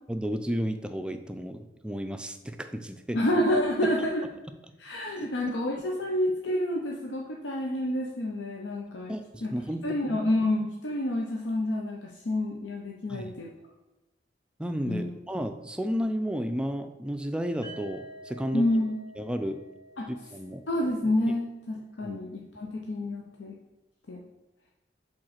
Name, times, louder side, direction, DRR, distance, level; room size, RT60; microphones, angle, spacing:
voice 1, 0.1-3.2 3.8-4.1 5.2-5.3 9.1-10.3 13.1-13.3 14.6-18.7 19.2-19.6 20.1-20.6 21.3-21.4 22.0-22.2, equal, 5° right, 7 dB, 0.3 m, -33 dB
voice 2, 3.1-4.2 4.8-9.1 9.4-9.5 9.8-13.5 14.8-15.1 18.5-18.9 20.0-20.1 20.7-23.6 24.1-24.2, left 1 dB, 85° left, -1 dB, 0.7 m, -28 dB
sound 1, 17.6-21.5, right 1 dB, 20° left, 1.7 m, -49 dB
5.3 x 3.7 x 5.8 m, 1.0 s
head